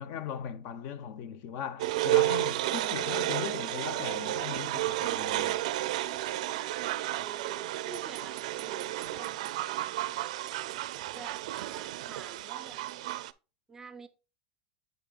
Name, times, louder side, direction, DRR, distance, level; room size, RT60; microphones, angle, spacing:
voice 1, 0.0-5.6, left 8 dB, 45° left, 0.7 m, -38 dB
sound 1, 1.8-13.3, right 16 dB, 70° right, 0.4 m, -32 dB
voice 2, 7.1-9.5 11.1-12.8 13.7-14.1, right 4 dB, 10° right, 0.5 m, -48 dB
8.1 x 6.3 x 2.3 m
supercardioid pair, 160°, 4 cm